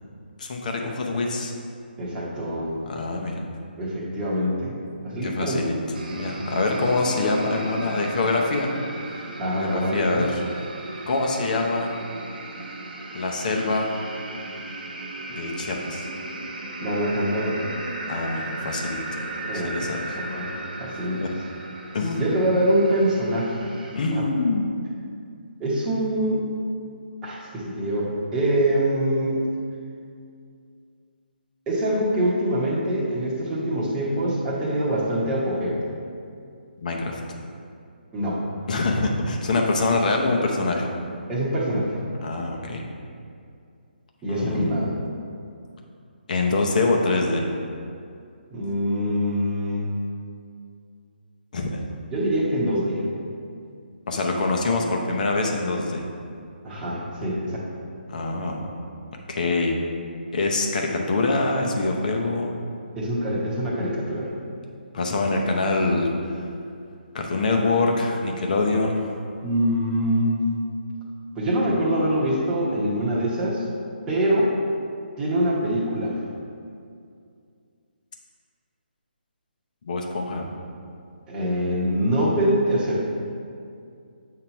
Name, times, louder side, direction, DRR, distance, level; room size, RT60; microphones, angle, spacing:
voice 1, 0.4-1.5 2.9-3.4 5.2-5.8 6.1-8.7 9.5-10.4 11.1-11.9 13.1-14.0 15.3-16.1 18.1-19.0 19.5-20.0 21.2-21.3 21.9-22.2 23.9-24.7 36.8-37.2 38.7-40.9 42.2-42.8 44.3-44.8 46.3-47.4 51.5-51.8 54.1-56.0 58.1-58.7 59.3-59.7 60.3-62.6 64.9-66.4 67.1-69.1 79.8-80.4, left 3 dB, 50° left, 1 dB, 0.9 m, -24 dB
voice 2, 2.0-2.8 3.8-4.8 5.0-5.7 9.4-10.2 16.8-17.6 19.5-20.5 20.8-21.2 22.2-23.7 24.1-24.3 25.6-26.4 27.2-29.4 31.7-35.8 38.1-38.4 41.3-41.9 44.2-45.0 48.5-49.9 52.1-53.0 56.6-57.6 63.0-64.3 69.4-70.4 71.3-73.6 74.1-74.5 75.2-76.2 81.3-83.1, right 1 dB, 10° right, -8 dB, 1.1 m, -24 dB
sound 1, 5.9-24.0, right 2 dB, 55° right, 1.0 m, -36 dB
7.7 x 2.9 x 5.7 m, 2.4 s
hypercardioid pair, 160°, 6 cm